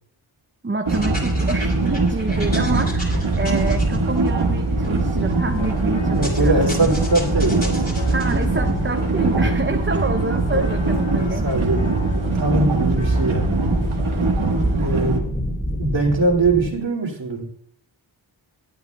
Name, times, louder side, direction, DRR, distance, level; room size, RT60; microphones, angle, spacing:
voice 1, 0.6-6.6 8.1-11.5, right 3 dB, 25° right, 6 dB, 0.6 m, -27 dB
sound 1, 0.9-16.7, left 1 dB, 20° left, 3.3 m, -28 dB
sound 2, 0.9-15.2, right 3 dB, 80° right, 1.5 m, -22 dB
sound 3, 5.4-14.5, left 2 dB, 65° left, 1.7 m, -39 dB
voice 2, 6.1-8.1 10.5-10.7 11.1-13.6 14.5-15.5 15.8-17.4, right 2 dB, 65° right, 0 dB, 2.5 m, -22 dB
20.5 x 8.6 x 2.3 m, 0.65 s
wide cardioid pair, 55°, 48 cm